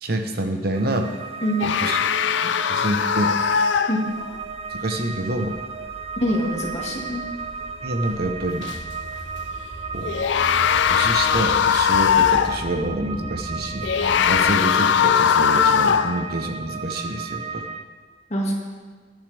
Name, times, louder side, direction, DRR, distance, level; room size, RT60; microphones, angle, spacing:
voice 1, 0.0-1.1 1.6-2.0 2.4-3.4 4.7-5.6 7.8-8.7 9.9-10.2 10.9-17.7, right 1 dB, 55° right, 5 dB, 1.0 m, -27 dB
sound 1, 0.7-17.9, right 5 dB, 30° right, 0.5 m, -34 dB
sound 2, 1.6-4.4 8.6-8.8 10.0-12.7 13.8-16.3, left 7 dB, 70° left, 0.4 m, -20 dB
sound 3, 4.1-14.5, equal, 5° right, 1.8 m, -39 dB
voice 2, 6.2-7.2 18.3-18.5, equal, 35° left, -1 dB, 2.0 m, -24 dB
19.5 x 9.4 x 3.5 m, 1.5 s
head